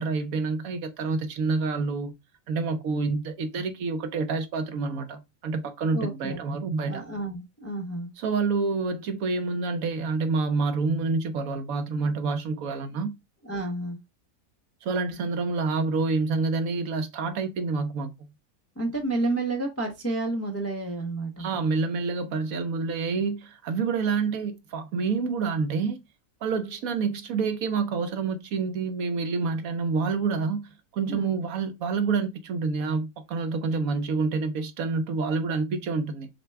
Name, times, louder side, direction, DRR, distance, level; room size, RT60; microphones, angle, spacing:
voice 1, 0.0-2.1 2.5-7.0 8.2-13.1 14.8-18.3 21.4-26.0 26.4-30.6 30.9-36.3, right 4 dB, 70° right, 1.1 m, -28 dB
voice 2, 5.9-6.4 6.9-8.1 13.4-14.0 18.8-21.5 31.1-31.3, right 2 dB, 20° left, 0.4 m, -30 dB
6.6 x 2.2 x 3.3 m
omnidirectional pair, 1.6 m